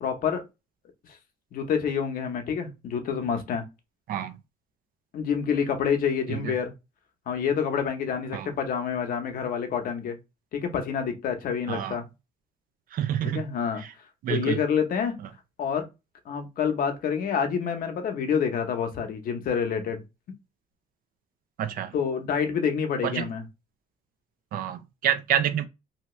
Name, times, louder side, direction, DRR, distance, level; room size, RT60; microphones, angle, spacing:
voice 1, 0.0-0.4 1.5-3.6 5.1-6.7 7.3-10.2 10.5-12.0 13.2-13.8 14.3-15.2 15.6-15.8 16.3-20.0 21.9-23.5, left 7 dB, 55° left, 0.8 m, -27 dB
voice 2, 12.9-13.4 14.2-14.6 21.6-21.9 23.0-23.2 24.5-25.7, right 10 dB, 55° right, 0.5 m, -27 dB
2.8 x 2.3 x 2.9 m
cardioid pair, 110°, 17 cm